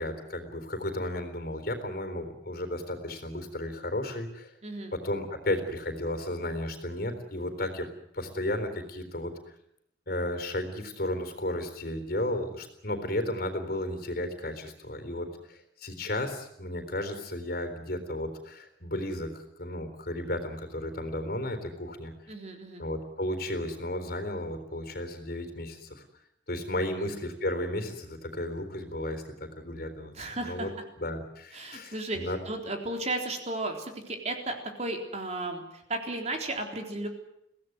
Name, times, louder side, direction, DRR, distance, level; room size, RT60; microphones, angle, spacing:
voice 1, 0.0-4.5 4.9-7.9 8.1-9.3 10.1-22.1 22.8-26.0 26.5-30.1 30.4-30.7 31.0-32.4, left 1 dB, 55° left, 8 dB, 3.9 m, -34 dB
voice 2, 4.6-5.0 22.3-22.8 26.8-27.1 30.1-30.7 31.5-37.1, right 2 dB, 35° right, 3 dB, 3.8 m, -34 dB
24.0 x 17.0 x 9.5 m, 0.77 s
head